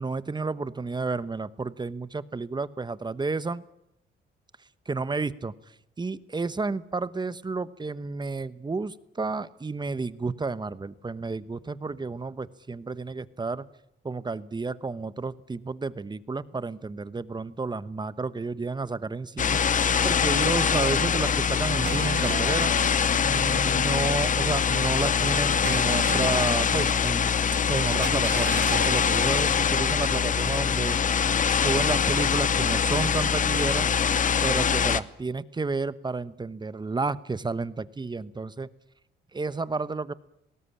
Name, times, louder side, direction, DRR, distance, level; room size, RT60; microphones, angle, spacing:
voice 1, 0.0-3.6 4.9-5.5 6.0-13.7 14.0-22.7 23.2-27.3 27.7-31.0 31.5-33.9 34.4-38.7 39.3-40.1, right 3 dB, 20° right, 16 dB, 1.0 m, -31 dB
sound 1, 19.4-35.0, left 7 dB, 40° left, 0.9 m, -24 dB
sound 2, 21.3-21.4 21.8-24.3 24.8-25.2 25.6-27.2 27.4-27.6 27.9-29.7, right 7 dB, 60° right, 2.3 m, -37 dB
20.0 x 18.0 x 10.0 m, 0.79 s
cardioid pair, 90°, 20 cm